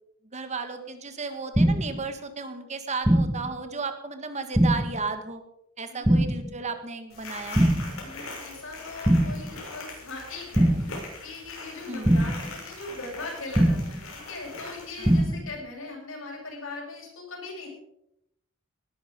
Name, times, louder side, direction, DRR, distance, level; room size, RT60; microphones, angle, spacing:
voice 1, 0.3-5.4 5.8-7.7 11.9-12.2 15.0-15.1, right 4 dB, 35° right, 8 dB, 1.6 m, -34 dB
sound 1, 1.5-2.0 3.0-3.5 4.5-5.0 6.0-6.5 7.5-8.0 9.0-9.5 10.5-11.0 12.0-12.5 13.5-14.0 15.0-15.5, right 1 dB, 10° right, 0.9 m, -22 dB
sound 2, 7.1-15.2, left 3 dB, 85° left, 6.7 m, -42 dB
voice 2, 8.0-17.7, left 3 dB, 65° left, -2 dB, 8.0 m, -40 dB
19.0 x 12.5 x 5.3 m, 0.80 s
head